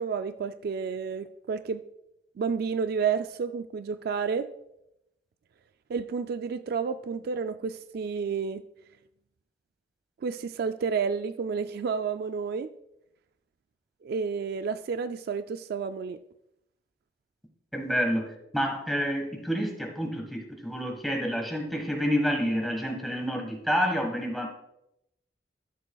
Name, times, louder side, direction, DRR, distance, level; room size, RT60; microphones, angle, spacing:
voice 1, 0.0-1.8 2.4-4.5 5.9-8.6 10.2-12.7 14.0-16.2, right 5 dB, 60° right, 0.3 m, -30 dB
voice 2, 17.7-24.5, equal, ahead, 1.4 m, -29 dB
13.0 x 7.0 x 2.3 m
head